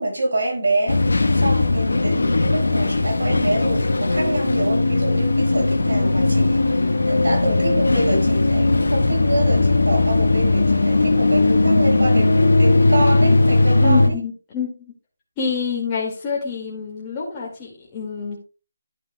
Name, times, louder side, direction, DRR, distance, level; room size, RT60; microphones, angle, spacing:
voice 1, 0.0-14.1, right 1 dB, 80° right, 5.3 m, -26 dB
sound 1, 0.9-14.1, left 2 dB, 90° left, 1.1 m, -18 dB
voice 2, 13.7-14.9 15.4-18.4, left 4 dB, 20° left, 2.1 m, -27 dB
11.0 x 7.8 x 2.2 m
figure-of-eight pair, 165°, 0 cm